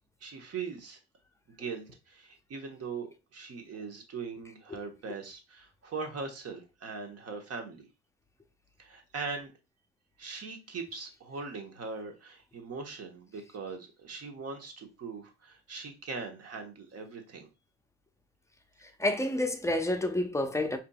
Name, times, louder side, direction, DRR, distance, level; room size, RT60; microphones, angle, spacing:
voice 1, 0.2-1.0 1.5-7.9 8.8-9.5 10.2-17.5, right 4 dB, 40° right, 1.2 m, -40 dB
voice 2, 19.0-20.8, left 1 dB, 10° left, 0.7 m, -29 dB
4.9 x 2.9 x 2.3 m
hypercardioid pair, 55°, 37 cm